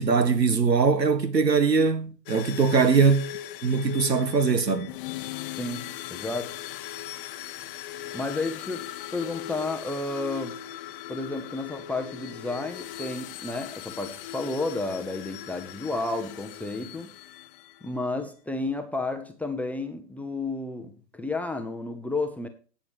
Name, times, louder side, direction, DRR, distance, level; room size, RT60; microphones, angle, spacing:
voice 1, 0.0-3.3 3.6-4.9, right 5 dB, 80° right, 1.8 m, -22 dB
sound 1, 2.3-17.9, left 12 dB, 35° left, 0.9 m, -39 dB
voice 2, 5.5-6.6 8.1-10.6 11.1-17.1 17.8-22.5, left 2 dB, 5° left, 0.7 m, -32 dB
18.5 x 7.0 x 3.0 m
figure-of-eight pair, 115°, 49 cm